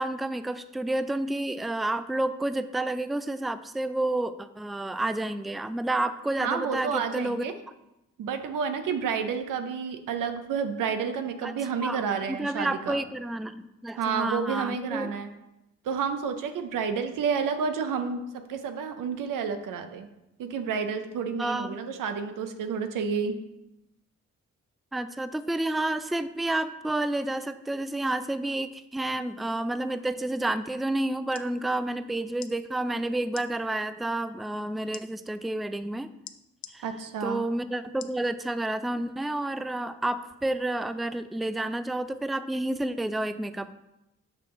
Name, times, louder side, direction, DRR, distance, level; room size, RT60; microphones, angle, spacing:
voice 1, 0.0-7.5 11.4-11.5 11.8-12.0 12.3-15.1 21.4-21.8 24.9-36.1 36.7-36.8 37.2-43.7, right 1 dB, ahead, 12 dB, 0.4 m, -30 dB
voice 2, 6.4-7.5 8.2-13.0 14.0-15.3 15.8-20.1 20.4-23.3 36.8-37.5, right 6 dB, 90° right, 7 dB, 0.7 m, -30 dB
sound 1, 31.3-31.5 32.3-32.5 33.3-33.5 34.9-35.1 36.3-36.8 38.0-38.2 38.8-38.9, left 10 dB, 65° left, 0.5 m, -43 dB
5.9 x 5.8 x 3.8 m, 0.91 s
supercardioid pair, 45°, 31 cm